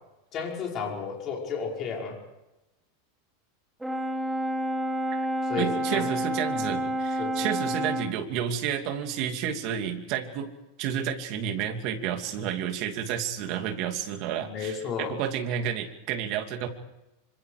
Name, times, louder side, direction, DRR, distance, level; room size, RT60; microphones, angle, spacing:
voice 1, 0.3-2.2 5.4-6.1 6.5-6.8 7.2-7.5 14.4-15.2, left 6 dB, 30° left, 0 dB, 5.6 m, -33 dB
Brass instrument, 3.8-8.2, right 1 dB, 5° right, 1.4 m, -29 dB
voice 2, 5.6-10.5 10.8-16.7, right 9 dB, 45° right, 5 dB, 2.8 m, -31 dB
26.0 x 25.5 x 5.0 m, 0.96 s
supercardioid pair, 160°, 0 cm